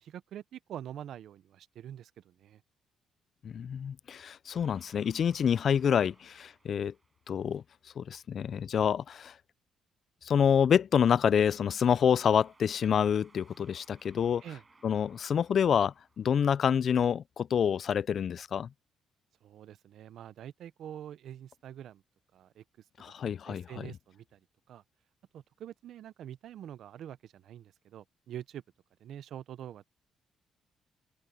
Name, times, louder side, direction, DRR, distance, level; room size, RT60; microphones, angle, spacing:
voice 1, 0.0-2.6 14.4-14.6 19.4-22.0 22.3-22.6 23.1-23.2 23.4-24.4 24.7-24.8 25.3-28.6 29.0-29.8, right 10 dB, 70° right, 0.7 m, -45 dB
voice 2, 3.4-6.9 7.3-7.6 8.0-9.3 10.2-14.4 14.8-18.7 23.0-23.9, left 8 dB, 55° left, 0.4 m, -27 dB
sound 1, 4.5-7.8 11.9-16.7, right 3 dB, 25° right, 8.0 m, -64 dB
cardioid pair, 90°, 0 cm